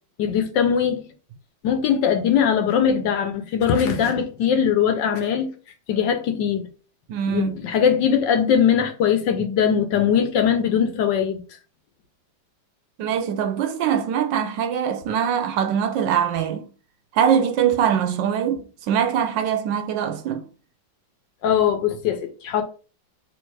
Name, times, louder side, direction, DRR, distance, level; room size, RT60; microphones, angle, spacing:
voice 1, 0.2-1.1 1.6-5.5 5.9-6.7 7.3-11.4 21.4-22.6, left 8 dB, 70° left, 1.4 m, -21 dB
voice 2, 7.1-7.5 13.0-16.7 17.1-20.5, right 8 dB, 75° right, 1.2 m, -22 dB
3.4 x 3.3 x 4.6 m
omnidirectional pair, 2.1 m